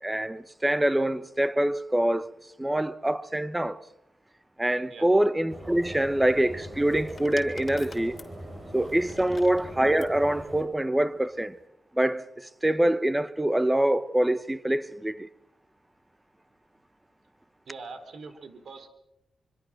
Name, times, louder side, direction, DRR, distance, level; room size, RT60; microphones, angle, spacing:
voice 1, 0.0-2.3 2.6-3.8 4.6-8.2 8.7-11.5 11.9-15.3, right 1 dB, 10° right, 1.1 m, -25 dB
sound 1, 5.5-10.6, right 1 dB, 35° right, 7.2 m, -42 dB
sound 2, 6.5-10.2 11.2-11.6, left 4 dB, 40° left, 3.1 m, -48 dB
voice 2, 17.7-18.9, right 4 dB, 65° right, 3.9 m, -43 dB
25.5 x 24.5 x 6.3 m
cardioid pair, 75°, 0 cm